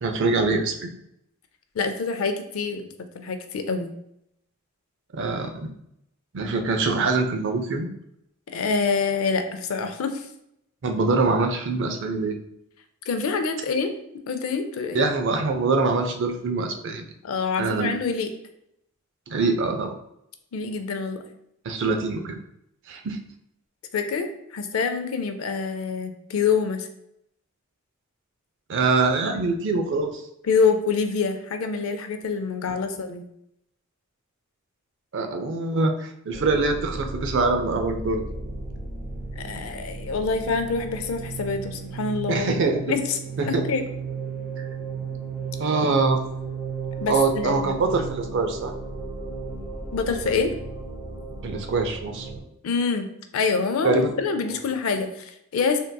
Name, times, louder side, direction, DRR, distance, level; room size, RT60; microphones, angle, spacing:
voice 1, 0.0-0.9 5.1-5.7 6.3-7.9 10.8-12.4 14.9-17.0 17.6-18.0 19.3-20.0 21.6-22.4 22.9-23.2 28.7-30.2 35.1-38.2 42.3-42.8 43.4-43.6 45.6-46.2 47.1-48.7 51.4-52.3 53.8-54.1, right 3 dB, 60° right, 5 dB, 0.4 m, -24 dB
voice 2, 1.8-2.9 3.1-3.9 8.5-10.3 13.1-13.9 14.3-15.0 17.2-18.3 20.5-21.2 23.9-26.9 30.4-33.2 39.4-42.6 42.9-43.8 47.0-47.8 49.9-50.5 52.6-55.8, left 5 dB, 70° left, 7 dB, 0.4 m, -26 dB
sound 1, 36.3-52.4, right 4 dB, 5° right, 1.0 m, -35 dB
3.6 x 2.6 x 2.2 m, 0.77 s
head